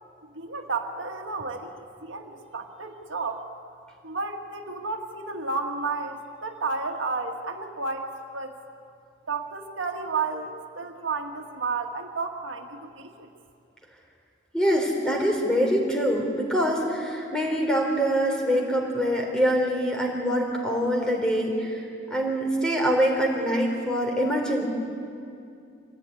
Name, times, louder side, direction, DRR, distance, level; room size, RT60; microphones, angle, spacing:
voice 1, 0.3-1.7 2.0-3.4 4.0-8.5 9.3-13.3, right 4 dB, 80° right, 4 dB, 1.7 m, -32 dB
voice 2, 14.5-21.8 22.1-24.6, equal, 5° left, 0 dB, 3.7 m, -24 dB
25.0 x 16.0 x 9.8 m, 2.5 s
head